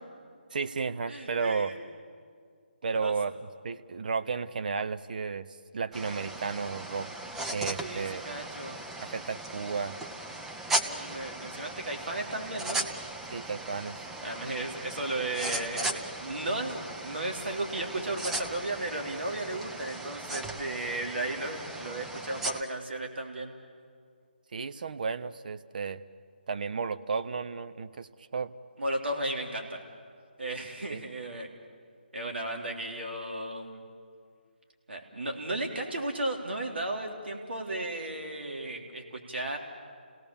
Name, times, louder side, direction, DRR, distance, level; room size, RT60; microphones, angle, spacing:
voice 1, 0.5-1.7 2.8-5.5 5.7-7.1 7.5-8.2 9.0-10.0 13.3-14.0 24.5-26.0 26.5-28.5 30.9-31.0, right 5 dB, 50° right, 11 dB, 0.8 m, -33 dB
voice 2, 1.1-1.8 3.0-3.1 7.8-8.8 10.8-12.8 14.2-23.5 28.8-29.8 30.4-31.5 32.1-33.8 34.9-39.6, right 1 dB, 80° right, 1 dB, 3.5 m, -35 dB
sound 1, 5.9-22.6, right 2 dB, 5° right, 0.6 m, -37 dB
29.0 x 17.5 x 7.2 m, 2.1 s
figure-of-eight pair, 155°, 6 cm